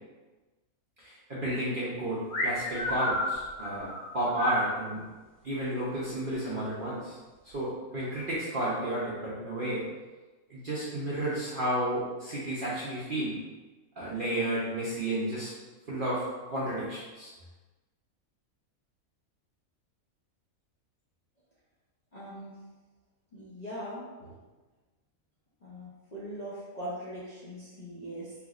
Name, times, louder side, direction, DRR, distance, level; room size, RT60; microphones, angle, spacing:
voice 1, 1.0-5.0 5.4-7.2 7.5-9.8 10.5-13.4 14.0-15.5 15.9-16.2 16.5-17.3, right 1 dB, 50° right, -8 dB, 0.6 m, -32 dB
sound 1, 2.3-4.8, left 1 dB, 75° left, 1.2 m, -31 dB
voice 2, 22.1-22.6 23.3-24.4 25.6-28.3, equal, 40° left, -9 dB, 0.6 m, -41 dB
3.4 x 2.9 x 2.4 m, 1.2 s
omnidirectional pair, 1.5 m